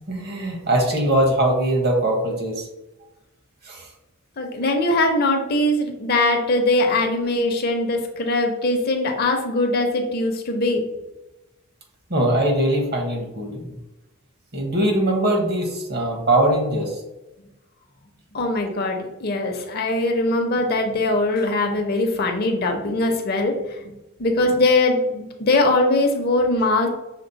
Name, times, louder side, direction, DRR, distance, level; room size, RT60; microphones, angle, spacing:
voice 1, 0.1-2.7 3.6-3.9 12.1-13.8 14.5-16.9, right 1 dB, 50° right, 2 dB, 1.0 m, -21 dB
voice 2, 4.4-10.8 18.3-26.9, left 2 dB, 45° left, 4 dB, 0.6 m, -21 dB
5.8 x 2.0 x 3.9 m, 0.98 s
head